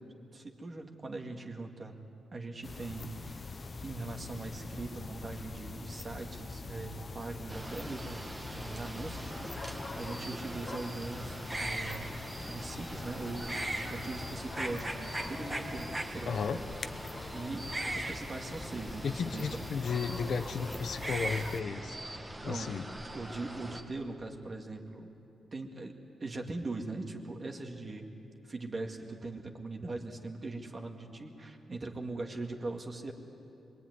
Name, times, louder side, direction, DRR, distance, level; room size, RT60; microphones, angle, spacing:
voice 1, 0.3-2.0 2.3-3.4 3.8-12.1 12.5-13.6 13.8-16.7 17.3-17.7 17.9-19.6 22.5-22.8 23.1-25.1 25.5-28.1 28.4-33.1, right 2 dB, 30° right, 3 dB, 2.1 m, -41 dB
sound 1, 2.6-21.6, left 3 dB, 30° left, 0.8 m, -44 dB
sound 2, 7.5-23.8, right 1 dB, 15° right, 2.1 m, -41 dB
voice 2, 16.2-16.6 19.0-22.0 22.4-22.8, left 5 dB, 50° left, 8 dB, 1.0 m, -34 dB
26.0 x 22.5 x 9.6 m, 2.7 s
wide cardioid pair, 150°, 0 cm